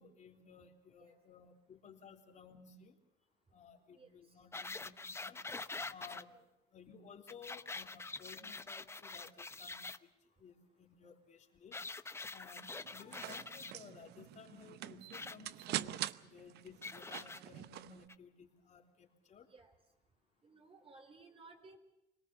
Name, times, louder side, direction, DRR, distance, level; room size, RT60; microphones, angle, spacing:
voice 1, 0.0-3.0 3.5-5.4 5.9-6.4 6.7-10.1 10.4-11.8 12.3-19.5, left 6 dB, 45° left, 2 dB, 3.5 m, -57 dB
sound 1, 4.5-6.2 7.3-10.0 11.7-13.7 15.1-15.4 16.8-17.4 18.1-18.2, left 3 dB, 15° left, 0.8 m, -45 dB
sound 2, 12.8-18.0, right 14 dB, 75° right, 0.8 m, -44 dB
voice 2, 19.4-19.7 20.4-21.8, right 3 dB, 35° right, 6 dB, 4.0 m, -58 dB
25.5 x 19.0 x 7.2 m, 0.90 s
cardioid pair, 110°, 17 cm